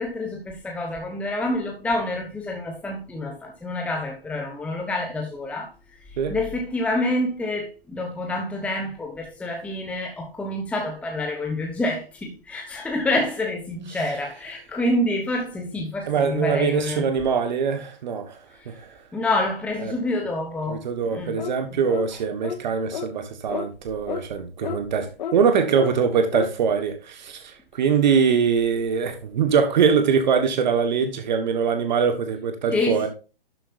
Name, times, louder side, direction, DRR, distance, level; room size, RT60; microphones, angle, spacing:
voice 1, 0.0-5.7 6.3-17.0 19.1-20.8 21.1-21.3 32.7-33.1, left 2 dB, 5° left, 1.1 m, -27 dB
voice 2, 16.1-18.4 18.7-18.9 19.8-19.9 20.7-33.1, right 6 dB, 50° right, 1.5 m, -23 dB
sound 1, 21.4-21.6 21.9-22.1 22.4-22.6 22.9-23.1 23.5-23.7 24.1-24.2 24.6-24.8 25.2-25.4 25.7-25.9 26.3-26.5, left 8 dB, 50° left, 1.0 m, -30 dB
12.0 x 7.8 x 2.6 m
hypercardioid pair, 135°, 29 cm